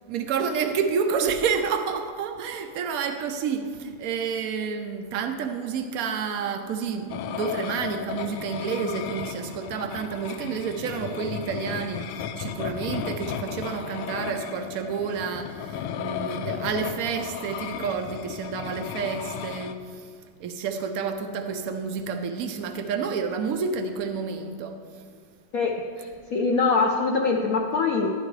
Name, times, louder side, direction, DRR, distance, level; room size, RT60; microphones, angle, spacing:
voice 1, 0.1-20.1 20.4-24.8, right 6 dB, 80° right, 0.8 m, -29 dB
sound 1, 7.1-19.7, left 9 dB, 90° left, 1.4 m, -35 dB
voice 2, 25.5-28.1, left 4 dB, 65° left, 0.9 m, -24 dB
11.5 x 10.5 x 3.2 m
omnidirectional pair, 2.2 m